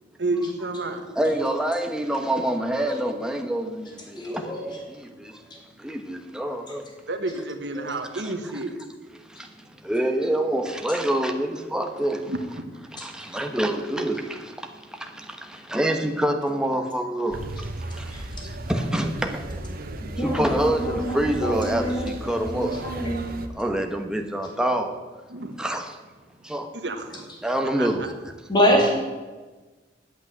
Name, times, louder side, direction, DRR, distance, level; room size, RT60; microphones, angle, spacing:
voice 1, 0.2-1.0 7.1-8.7 12.3-12.6 25.3-25.5 26.8-27.0 27.8-27.9, right 2 dB, 70° right, 7 dB, 1.4 m, -29 dB
voice 2, 1.1-5.4 5.8-6.8 8.1-8.5 9.3-9.5 9.8-12.3 12.9-19.5 20.2-22.8 23.6-25.0 25.6-26.0 26.4-26.7 27.4-28.1, right 1 dB, 5° right, 4 dB, 1.1 m, -27 dB
voice 3, 4.1-4.8 7.7-8.0 13.0-13.1 18.1-18.2 20.2-23.3 28.5-29.0, equal, 25° left, -1 dB, 3.0 m, -26 dB
sound 1, 17.3-23.5, right 1 dB, 55° right, 1.0 m, -35 dB
8.7 x 8.4 x 9.4 m, 1.3 s
head